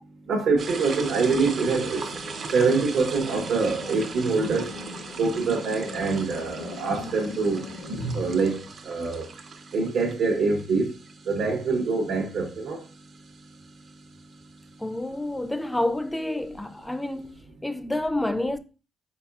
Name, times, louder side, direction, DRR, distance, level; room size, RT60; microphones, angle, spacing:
voice 1, 0.3-2.0 2.5-4.7 5.2-7.6 7.9-9.3 9.7-10.9 11.3-12.8, right 4 dB, 70° right, 0.9 m, -25 dB
sound 1, 0.6-14.9, right 5 dB, 55° right, 0.5 m, -40 dB
sound 2, 1.2-8.5, left 3 dB, 70° left, 0.5 m, -41 dB
voice 2, 14.8-18.6, left 1 dB, 10° left, 0.4 m, -29 dB
4.2 x 3.9 x 2.3 m
cardioid pair, 90°, 0 cm